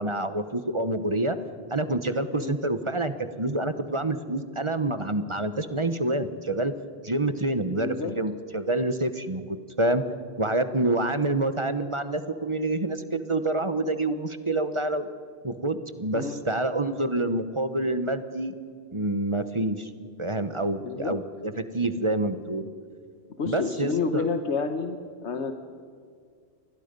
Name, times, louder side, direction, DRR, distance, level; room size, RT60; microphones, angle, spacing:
voice 1, 0.0-1.4 1.7-6.7 7.0-10.0 10.4-15.1 15.4-18.5 18.9-19.9 20.2-22.7 23.5-24.3, right 2 dB, 30° right, 11 dB, 1.0 m, -27 dB
voice 2, 7.7-8.2 16.1-16.4 20.8-21.2 23.4-25.5, left 4 dB, 80° left, 7 dB, 1.4 m, -29 dB
27.5 x 20.5 x 5.4 m, 2.2 s
omnidirectional pair, 1.1 m